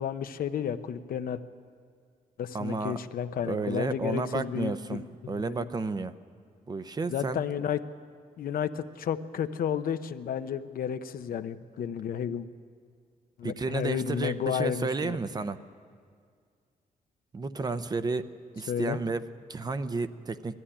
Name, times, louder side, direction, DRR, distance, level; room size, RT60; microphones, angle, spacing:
voice 1, 0.0-1.4 2.4-5.7 7.1-7.8 8.4-12.5 13.4-15.2 18.7-19.0, left 8 dB, 75° left, 10 dB, 0.7 m, -32 dB
voice 2, 2.5-3.0 3.4-6.2 6.7-7.4 13.4-15.6 17.3-18.3 18.5-20.6, right 3 dB, 25° right, 12 dB, 0.6 m, -32 dB
19.0 x 14.0 x 10.0 m, 2.1 s
wide cardioid pair, 150°, 15 cm